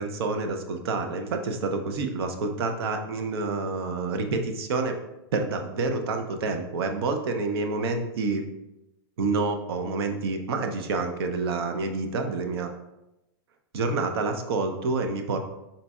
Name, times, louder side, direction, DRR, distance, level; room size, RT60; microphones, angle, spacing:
voice 1, 0.0-5.0 5.3-8.4 9.2-12.7 13.7-15.4, right 3 dB, 70° right, 5 dB, 0.6 m, -28 dB
4.2 x 3.9 x 2.3 m, 0.94 s
hypercardioid pair, 140°, 13 cm